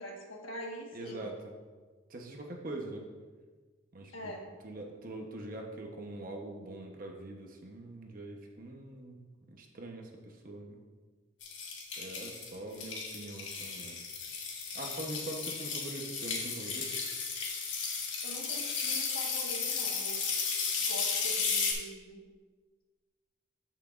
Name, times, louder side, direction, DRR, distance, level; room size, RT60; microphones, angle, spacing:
voice 1, 0.0-1.3 4.1-4.5 18.2-20.2 20.8-22.2, equal, 90° left, 0 dB, 1.5 m, -44 dB
voice 2, 0.9-1.4 2.1-3.1 3.9-4.3 4.6-9.2 9.5-10.8 12.0-14.0 14.7-16.9, right 1 dB, 45° right, 1 dB, 0.9 m, -43 dB
sound 1, 11.4-21.7, left 5 dB, 70° left, 1.7 m, -34 dB
13.5 x 5.8 x 2.5 m, 1.4 s
head